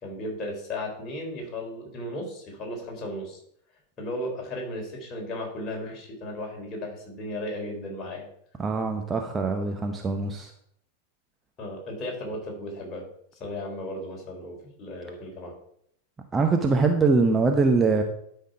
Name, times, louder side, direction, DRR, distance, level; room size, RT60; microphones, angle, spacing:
voice 1, 0.0-3.4 4.0-8.3 11.6-13.0 13.4-15.5, left 1 dB, 25° left, -1 dB, 3.9 m, -35 dB
voice 2, 8.6-10.5 16.3-18.0, right 4 dB, 15° right, 4 dB, 0.9 m, -23 dB
12.0 x 5.7 x 4.8 m, 0.70 s
figure-of-eight pair, 90°, 0 cm